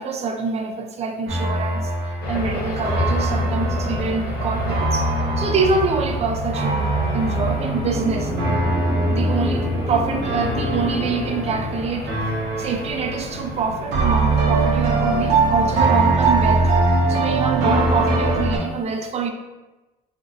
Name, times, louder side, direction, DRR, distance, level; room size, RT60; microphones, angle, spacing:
voice 1, 0.0-1.9 2.3-5.1 5.4-8.3 9.1-16.7 17.1-19.3, right 5 dB, 40° right, 5 dB, 0.4 m, -25 dB
sound 1, 1.3-11.7 12.1-13.5 13.9-18.6, right 2 dB, 80° right, 0.9 m, -22 dB
sound 2, 2.2-16.0, equal, 65° left, 0.8 m, -30 dB
sound 3, 7.2-12.1, left 1 dB, 25° left, 1.1 m, -27 dB
3.5 x 2.5 x 2.4 m, 1.1 s
cardioid pair, 110°, 17 cm